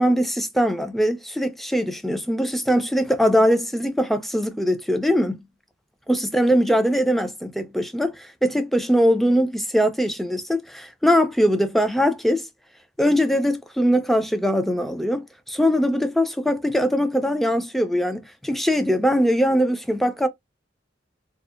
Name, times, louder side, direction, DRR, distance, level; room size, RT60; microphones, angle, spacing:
voice 1, 0.0-5.4 6.1-12.5 13.0-20.3, equal, ahead, 0.3 m, -21 dB
2.6 x 2.0 x 2.2 m
head